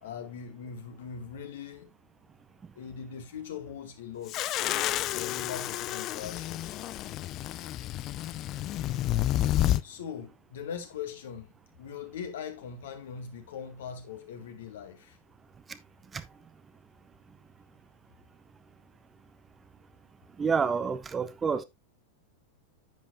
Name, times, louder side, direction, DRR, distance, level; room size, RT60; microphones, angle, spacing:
voice 1, 0.0-1.9 2.8-4.6 5.0-6.8 9.8-11.5 11.8-15.2, left 7 dB, 60° left, 1.9 m, -41 dB
sound 1, 4.3-9.8, left 14 dB, 35° left, 0.4 m, -30 dB
voice 2, 20.4-21.6, right 5 dB, 20° right, 0.6 m, -28 dB
10.5 x 8.5 x 2.3 m
figure-of-eight pair, 90°, 0 cm